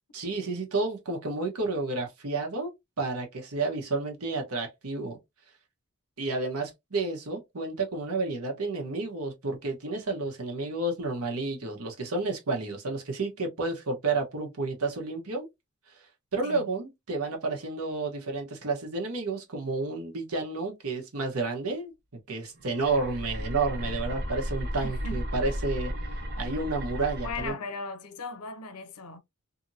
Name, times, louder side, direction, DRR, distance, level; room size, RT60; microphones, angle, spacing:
voice 1, 0.1-2.7 3.0-5.2 6.2-15.5 16.3-21.9 22.3-25.9 26.4-27.5, right 3 dB, 85° right, 1.0 m, -31 dB
sound 1, 22.5-27.5, equal, 50° right, 1.0 m, -34 dB
voice 2, 24.8-25.2 27.2-29.2, left 3 dB, 90° left, 0.6 m, -38 dB
2.8 x 2.6 x 2.6 m
head